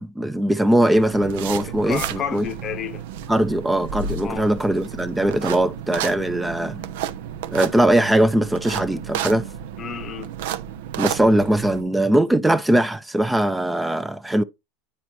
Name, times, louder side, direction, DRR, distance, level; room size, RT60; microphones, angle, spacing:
voice 1, 0.0-2.5 3.3-6.8 7.5-9.4 11.0-14.4, right 1 dB, 10° right, 0.4 m, -20 dB
sound 1, 0.9-11.8, right 9 dB, 75° right, 0.5 m, -32 dB
voice 2, 1.6-3.0 4.2-4.4 9.8-10.3, left 9 dB, 40° left, 0.7 m, -31 dB
9.5 x 4.1 x 3.1 m
supercardioid pair, 105°, 0 cm